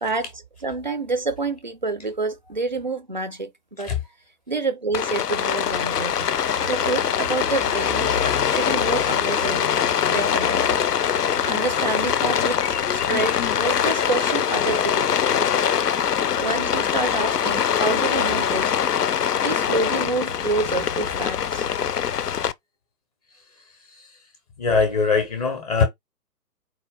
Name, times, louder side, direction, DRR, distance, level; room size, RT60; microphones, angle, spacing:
voice 1, 0.0-3.9 4.5-6.1 6.6-9.7 10.1-10.7 11.5-15.6 16.4-18.8 19.4-21.7, right 3 dB, 35° right, 0.4 m, -28 dB
Rain, 4.9-22.5, left 8 dB, 80° left, 0.6 m, -23 dB
voice 2, 24.6-25.8, left 5 dB, 25° left, 0.7 m, -21 dB
4.2 x 2.2 x 3.4 m
figure-of-eight pair, 125°, 47 cm